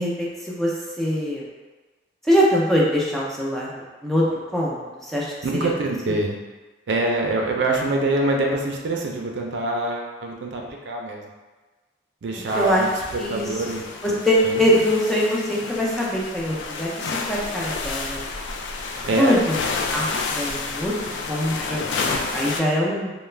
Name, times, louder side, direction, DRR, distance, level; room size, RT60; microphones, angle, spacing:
voice 1, 0.0-1.4 2.3-4.2 4.5-5.3 5.6-5.7 6.1-6.2 12.6-12.8 13.2-13.5 14.0-18.2 19.0-19.6 19.9-20.1 20.3-20.9 21.3-23.1, equal, ahead, -6 dB, 0.4 m, -23 dB
voice 2, 5.4-6.4 6.9-11.3 12.2-13.8 14.4-14.6 19.1-19.4, right 2 dB, 85° right, 0 dB, 0.4 m, -25 dB
sound 1, 12.5-22.6, left 4 dB, 80° left, 0.3 m, -30 dB
2.3 x 2.1 x 3.1 m, 1.3 s
head